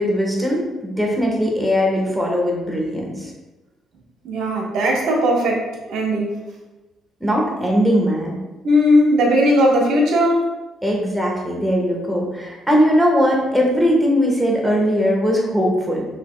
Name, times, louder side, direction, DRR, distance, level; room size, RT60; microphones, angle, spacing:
voice 1, 0.0-3.3 7.2-8.4 10.8-16.1, equal, 5° right, -2 dB, 1.3 m, -19 dB
voice 2, 4.2-5.6 5.9-6.3 8.6-10.4, equal, 70° right, -1 dB, 1.2 m, -17 dB
5.7 x 3.5 x 2.3 m, 1.1 s
cardioid pair, 80°, 0 cm